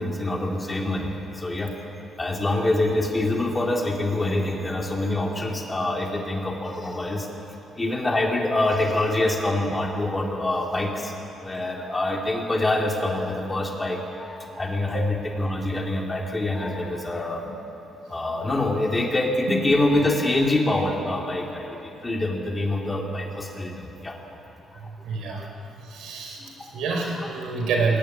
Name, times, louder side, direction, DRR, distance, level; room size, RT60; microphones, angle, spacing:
voice 1, 0.0-1.7 2.2-7.3 7.8-11.1 11.4-17.4 18.1-24.2 24.7-24.8 25.3-25.4 26.4-26.7 27.2-27.3, left 2 dB, 20° left, 0 dB, 3.9 m, -25 dB
voice 2, 24.8-25.5 25.8-28.0, right 4 dB, 85° right, 1 dB, 5.0 m, -28 dB
21.0 x 18.0 x 9.9 m, 2.9 s
cardioid pair, 90°, 0 cm